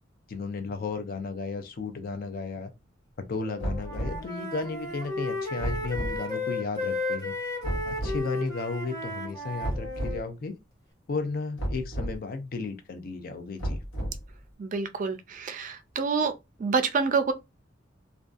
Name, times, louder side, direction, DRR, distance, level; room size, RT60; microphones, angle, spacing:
voice 1, 0.3-2.7 3.3-7.5 7.8-10.5 11.1-13.8, left 4 dB, 50° left, 0.4 m, -34 dB
Wind instrument woodwind instrument, 3.5-10.2, left 2 dB, 20° left, 1.2 m, -34 dB
sound 1, 3.6-4.2 5.6-6.2 7.6-8.2 9.6-10.2 11.6-12.2 13.6-14.3, equal, 80° left, 1.1 m, -32 dB
voice 2, 14.6-16.3 16.6-17.3, right 5 dB, 40° right, 0.3 m, -27 dB
2.5 x 2.2 x 2.4 m
head